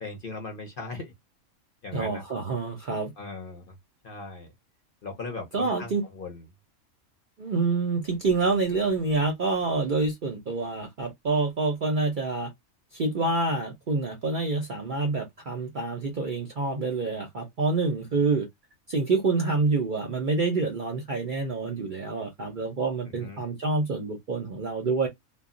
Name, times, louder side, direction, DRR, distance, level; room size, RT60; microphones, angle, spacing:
voice 1, 0.0-1.1 1.8-2.2 3.2-3.7 4.0-4.5 5.0-6.4 23.2-23.4, left 3 dB, 50° left, 0.7 m, -38 dB
voice 2, 1.9-3.1 5.5-6.0 7.4-12.5 12.9-18.5 18.9-25.1, right 3 dB, 55° right, 0.6 m, -27 dB
2.3 x 2.1 x 3.7 m
omnidirectional pair, 1.5 m